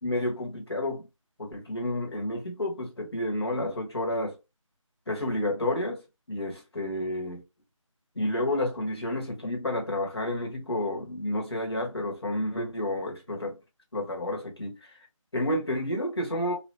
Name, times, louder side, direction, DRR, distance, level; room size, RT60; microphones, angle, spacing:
voice 1, 0.0-1.1 1.4-4.3 5.1-6.0 6.3-7.4 8.1-13.6 13.9-14.9 15.3-16.6, left 1 dB, 50° left, 1.4 m, -30 dB
3.3 x 2.5 x 2.7 m
figure-of-eight pair, 180°, 17 cm